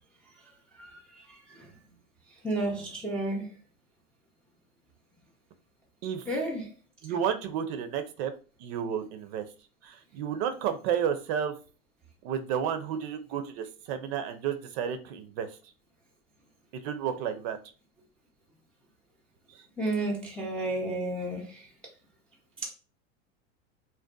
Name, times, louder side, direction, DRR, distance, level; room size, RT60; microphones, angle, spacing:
voice 1, 0.8-1.7 2.4-3.5 6.3-6.7 19.8-21.7 22.6-22.7, right 2 dB, 5° left, 0.3 m, -32 dB
voice 2, 7.0-8.3 8.6-9.4 9.8-11.5 12.2-15.5 16.8-17.6 19.6-19.7, right 8 dB, 55° right, 0.5 m, -31 dB
2.6 x 2.2 x 2.2 m
hypercardioid pair, 105°, 39 cm